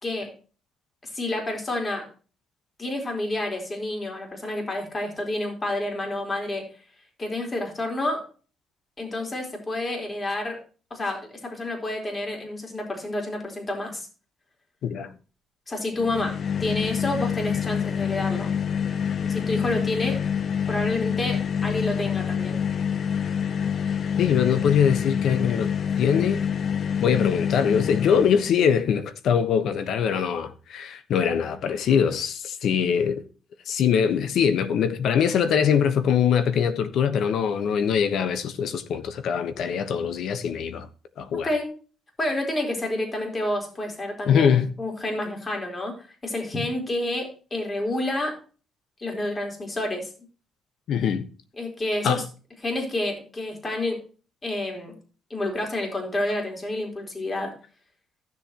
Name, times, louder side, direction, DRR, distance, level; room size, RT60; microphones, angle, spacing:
voice 1, 1.1-2.0 2.8-6.6 7.2-8.2 9.0-10.6 10.9-14.1 15.7-18.5 19.2-20.2 20.7-22.6 41.3-41.7 42.2-45.9 46.2-48.4 49.0-50.1 51.6-52.2 52.6-54.0 54.4-54.9 55.3-57.5, left 1 dB, 30° left, 4.1 m, -29 dB
voice 2, 14.8-15.1 24.2-25.7 26.0-26.4 27.0-33.2 33.7-40.9 41.2-41.5 44.3-44.7 50.9-51.3 52.0-52.2, left 7 dB, 75° left, 1.1 m, -23 dB
sound 1, 16.0-28.6, left 7 dB, 55° left, 0.8 m, -27 dB
15.0 x 7.4 x 3.0 m
cardioid pair, 90°, 0 cm